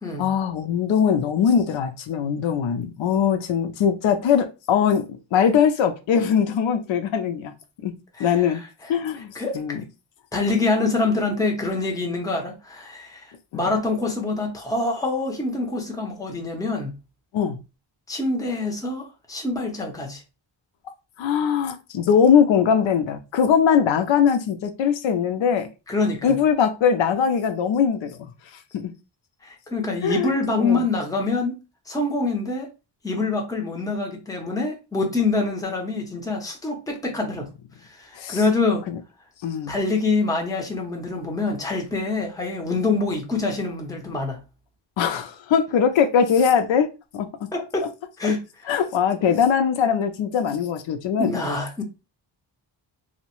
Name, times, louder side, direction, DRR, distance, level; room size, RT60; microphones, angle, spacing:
voice 1, 0.2-7.5 7.8-7.9 8.2-8.6 8.9-9.8 13.5-13.8 17.3-17.6 21.2-25.7 26.2-28.9 30.0-30.9 38.1-38.4 38.9-39.0 39.4-39.8 45.0-47.5 48.2-48.3 48.7-51.3, left 7 dB, 85° left, 0.6 m, -21 dB
voice 2, 9.4-9.8 10.3-13.3 13.5-17.0 18.1-20.2 25.9-26.4 29.4-31.6 31.9-32.7 33.0-37.5 38.0-38.8 39.7-44.4 47.5-47.9 48.2-48.4 51.2-51.8, left 3 dB, 10° left, 0.6 m, -25 dB
2.8 x 2.1 x 2.9 m
wide cardioid pair, 150°, 44 cm